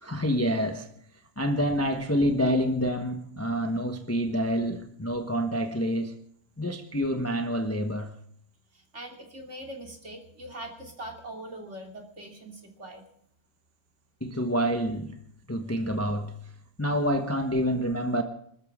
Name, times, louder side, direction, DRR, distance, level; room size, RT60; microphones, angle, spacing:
voice 1, 0.0-0.9 1.4-6.2 6.6-8.1 14.2-15.2 15.5-16.4 16.8-18.2, equal, 10° left, 1.0 m, -27 dB
voice 2, 8.7-13.1, right 1 dB, 45° right, 3.2 m, -42 dB
26.5 x 13.5 x 3.7 m
omnidirectional pair, 1.8 m